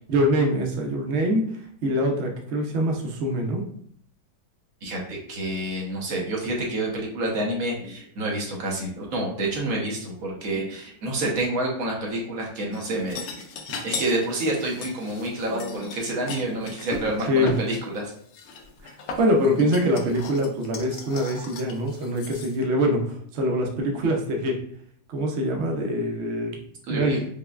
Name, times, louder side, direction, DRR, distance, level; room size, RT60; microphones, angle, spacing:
voice 1, 0.1-1.4 1.8-3.6 15.2-15.7 17.3-17.5 18.8-24.6 25.1-26.6 26.9-27.1, equal, 85° right, 1 dB, 0.5 m, -24 dB
voice 2, 4.8-13.4 13.8-18.1 26.9-27.2, right 1 dB, 55° right, -1 dB, 1.2 m, -28 dB
sound 1, 12.7-17.7 18.3-22.6, left 4 dB, 70° left, 0.9 m, -37 dB
5.2 x 2.2 x 2.3 m, 0.63 s
omnidirectional pair, 2.0 m